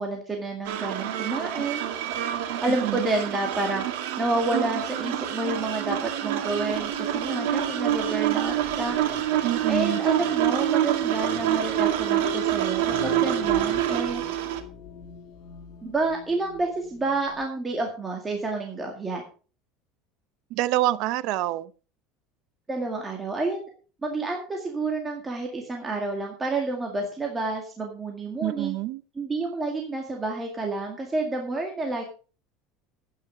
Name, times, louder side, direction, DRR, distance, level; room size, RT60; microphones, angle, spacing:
voice 1, 0.0-1.9 2.6-3.9 4.2-9.0 9.7-14.2 15.8-19.2 22.7-23.6 24.0-28.8 29.2-32.0, right 2 dB, 15° right, 2.0 m, -29 dB
sound 1, 0.6-14.6, right 12 dB, 90° right, 2.3 m, -27 dB
voice 2, 2.7-3.1 9.4-10.0 20.5-21.7 28.4-29.0, right 16 dB, 50° right, 0.7 m, -26 dB
sound 2, 6.5-17.4, left 9 dB, 55° left, 1.4 m, -42 dB
12.0 x 9.3 x 5.1 m
cardioid pair, 165°, 0 cm